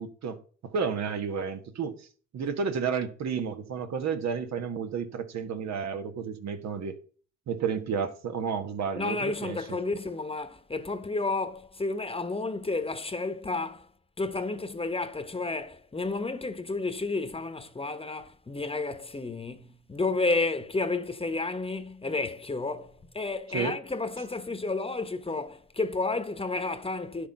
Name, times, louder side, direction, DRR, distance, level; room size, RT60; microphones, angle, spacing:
voice 1, 0.0-2.0 2.3-7.0 7.5-9.6 23.5-23.7, right 6 dB, 65° right, 1.3 m, -31 dB
voice 2, 9.0-13.9 14.2-27.3, left 3 dB, 20° left, 1.1 m, -31 dB
9.9 x 6.7 x 5.4 m
cardioid pair, 90°, 30 cm